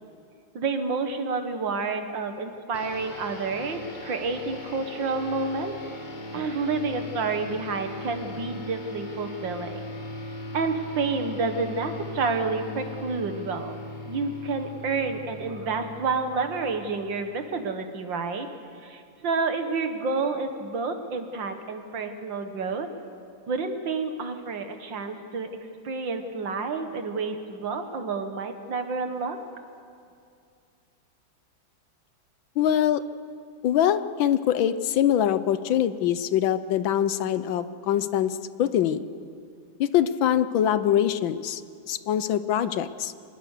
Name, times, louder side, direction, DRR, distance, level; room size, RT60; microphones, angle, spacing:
voice 1, 0.5-5.8 6.3-9.8 10.5-13.8 14.1-18.5 18.8-22.9 23.5-25.5 25.8-29.4, right 4 dB, 65° right, 6 dB, 2.2 m, -29 dB
sound 1, 2.7-17.5, left 1 dB, 30° left, 1.2 m, -39 dB
voice 2, 32.6-33.0 33.6-39.1 39.8-41.6 41.9-43.1, left 10 dB, 75° left, 13 dB, 1.5 m, -23 dB
25.0 x 21.0 x 6.7 m, 2.4 s
omnidirectional pair, 2.2 m